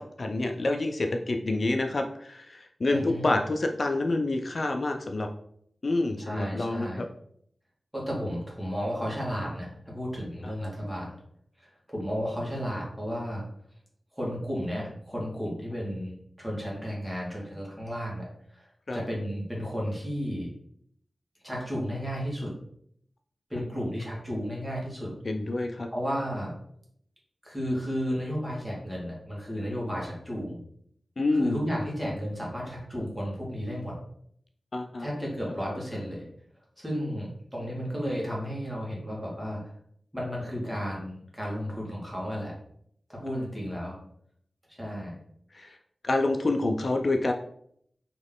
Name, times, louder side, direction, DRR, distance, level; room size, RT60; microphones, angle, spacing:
voice 1, 0.0-5.3 5.8-7.1 10.4-10.5 18.9-19.0 25.2-25.9 31.2-31.6 34.7-35.1 45.5-45.8 46.0-47.3, left 2 dB, 55° left, 4 dB, 0.4 m, -27 dB
voice 2, 2.9-3.2 6.2-7.0 7.9-11.2 11.6-13.4 14.1-20.5 21.4-22.5 23.5-25.1 25.9-26.5 27.4-30.6 31.3-33.9 35.0-36.3 36.8-39.7 40.1-42.6 43.1-44.0 44.7-45.2, equal, 10° right, -4 dB, 1.7 m, -33 dB
4.2 x 3.0 x 3.7 m, 0.67 s
wide cardioid pair, 95°, 0 cm